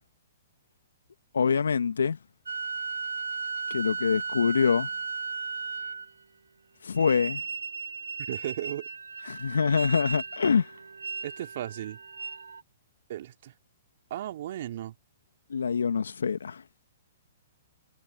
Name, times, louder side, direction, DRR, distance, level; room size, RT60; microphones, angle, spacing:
voice 1, 1.3-2.2 3.7-4.9 6.8-7.4 9.3-10.7 15.5-16.6, left 6 dB, 75° left, 2.1 m, -25 dB
sound 1, 2.5-6.2 6.9-12.6, right 5 dB, 80° right, 1.0 m, -36 dB
voice 2, 8.3-8.9 11.2-12.0 13.1-13.5 14.1-14.9, right 12 dB, 55° right, 2.8 m, -35 dB
hypercardioid pair, 120°, 0 cm